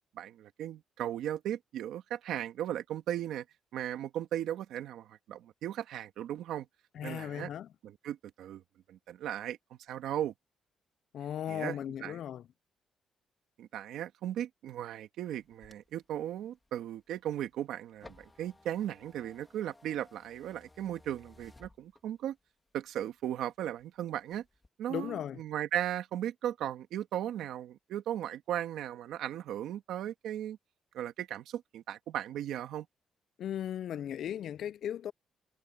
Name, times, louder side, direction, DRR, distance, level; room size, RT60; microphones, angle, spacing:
voice 1, 0.2-3.4 3.7-6.7 7.0-7.5 7.8-8.6 8.9-10.3 11.5-12.2 13.6-22.4 22.7-24.4 24.8-30.6 30.9-32.9, right 11 dB, 85° right, 1.8 m, -37 dB
voice 2, 6.9-7.7 11.1-12.4 24.9-25.4 33.4-35.1, left 10 dB, 75° left, 0.4 m, -37 dB
sound 1, 15.3-22.4 22.9-23.8 24.2-24.7, left 2 dB, 20° left, 2.8 m, -59 dB
cardioid pair, 90°, 0 cm